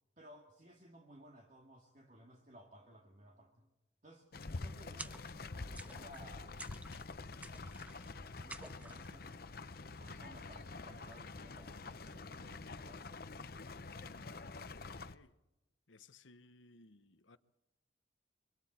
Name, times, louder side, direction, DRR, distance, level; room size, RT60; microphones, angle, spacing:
voice 1, 0.2-3.7 4.0-6.6 8.2-9.6 9.9-13.2, equal, 40° right, 2.3 m, -58 dB
sound 1, 4.3-15.2, left 3 dB, 50° left, 0.8 m, -47 dB
sound 2, 5.0-5.5 5.7-6.3 6.6-7.1 7.4-8.1 8.5-9.1, right 2 dB, 10° right, 0.7 m, -51 dB
voice 2, 14.9-15.4 15.9-17.4, left 3 dB, 90° left, 1.1 m, -61 dB
26.5 x 25.0 x 4.4 m
head